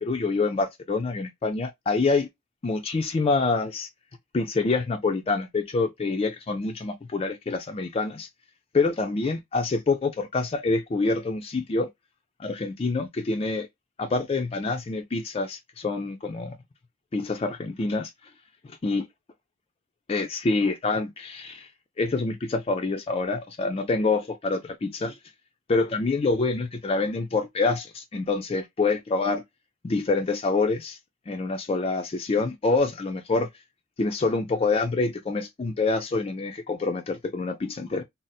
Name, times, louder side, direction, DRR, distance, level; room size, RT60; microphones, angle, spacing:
voice 1, 0.0-2.3 2.6-3.9 4.3-8.3 8.7-11.9 12.4-13.7 14.0-16.6 17.1-18.1 18.8-19.0 20.1-21.7 22.0-25.1 25.7-29.4 29.8-31.0 31.3-33.5 34.0-38.0, left 3 dB, 30° left, 0.3 m, -26 dB
2.6 x 2.0 x 3.9 m
head